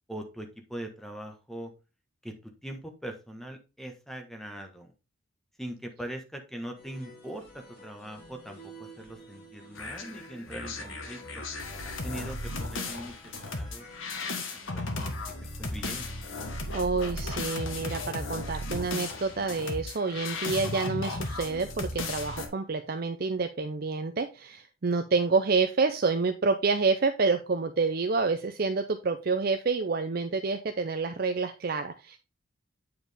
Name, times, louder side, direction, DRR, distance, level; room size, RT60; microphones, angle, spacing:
voice 1, 0.1-1.7 2.2-2.3 2.6-4.9 5.6-11.4 12.0-13.1 13.5-13.8 14.5-15.1 15.4-16.1, right 1 dB, ahead, 4 dB, 1.3 m, -41 dB
sound 1, 6.8-17.4, right 1 dB, 35° left, 4.5 m, -52 dB
sound 2, 9.8-22.5, left 2 dB, 75° left, 1.5 m, -35 dB
voice 2, 16.7-32.2, right 4 dB, 45° right, 7 dB, 0.5 m, -28 dB
8.8 x 4.9 x 3.5 m, 0.28 s
head